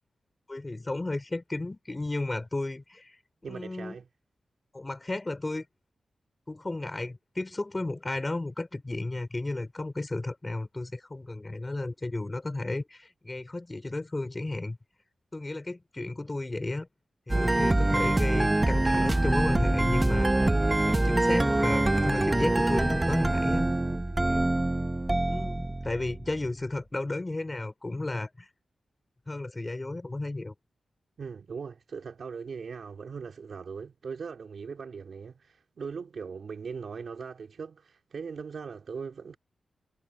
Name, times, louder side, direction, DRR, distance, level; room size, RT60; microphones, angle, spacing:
voice 1, 0.5-4.0 4.7-5.7 6.5-14.8 15.3-16.9 17.3-20.3 20.7-23.7 24.1-24.5 25.3-28.5 29.3-30.5, left 2 dB, 20° left, 3.8 m, -33 dB
voice 2, 3.4-4.1 31.2-39.4, right 5 dB, 60° right, 2.1 m, -40 dB
sound 1, 17.3-26.5, right 2 dB, 15° right, 0.6 m, -25 dB
wide cardioid pair, 140°, 0 cm